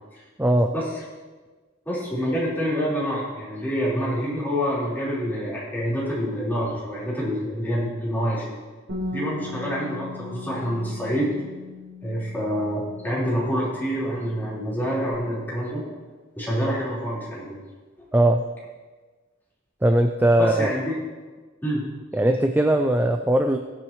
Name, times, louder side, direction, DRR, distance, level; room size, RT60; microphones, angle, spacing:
voice 1, 0.4-0.7 18.1-18.4 19.8-20.7 22.1-23.6, right 1 dB, 10° right, 5 dB, 0.5 m, -19 dB
voice 2, 1.9-8.5 9.1-11.3 12.0-15.8 16.4-17.6 20.4-21.0 21.6-21.9, equal, 10° left, -8 dB, 4.4 m, -27 dB
Bass guitar, 8.9-15.1, left 2 dB, 80° right, 4.0 m, -38 dB
22.0 x 7.6 x 3.2 m, 1.3 s
head